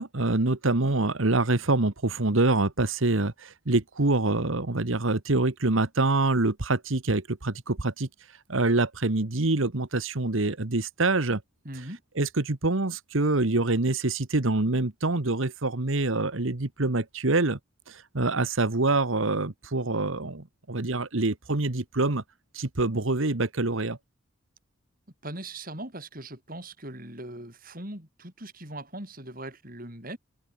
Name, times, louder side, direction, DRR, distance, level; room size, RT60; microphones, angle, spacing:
voice 1, 0.0-8.1 8.5-11.4 12.2-17.6 17.9-22.2 22.5-24.0, right 2 dB, 70° right, 1.4 m, -25 dB
voice 2, 11.6-12.0 25.2-30.2, right 1 dB, 40° right, 7.8 m, -40 dB
head